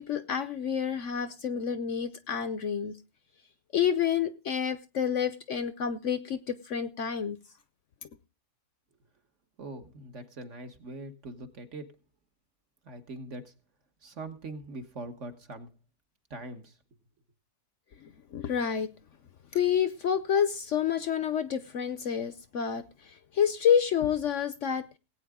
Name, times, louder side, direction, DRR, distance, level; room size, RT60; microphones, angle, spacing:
voice 1, 0.0-3.0 3.7-7.4 18.3-18.9 19.5-24.8, left 8 dB, 60° left, 1.0 m, -28 dB
voice 2, 9.6-12.0 12.8-13.5 14.0-15.7 16.3-16.8, right 2 dB, 50° right, 1.6 m, -42 dB
18.5 x 8.7 x 3.6 m
omnidirectional pair, 1.7 m